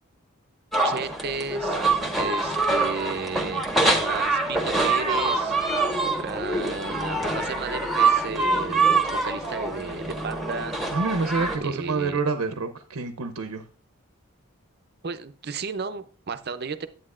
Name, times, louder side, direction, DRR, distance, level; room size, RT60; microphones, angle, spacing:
sound 1, 0.7-11.6, right 3 dB, ahead, 1.2 m, -25 dB
voice 1, 0.8-1.8 2.2-5.6 5.8-10.8 11.6-12.2 15.0-16.9, right 5 dB, 45° right, 11 dB, 0.6 m, -33 dB
voice 2, 10.9-13.6, right 4 dB, 90° right, 7 dB, 0.7 m, -27 dB
9.8 x 8.8 x 2.5 m, 0.39 s
head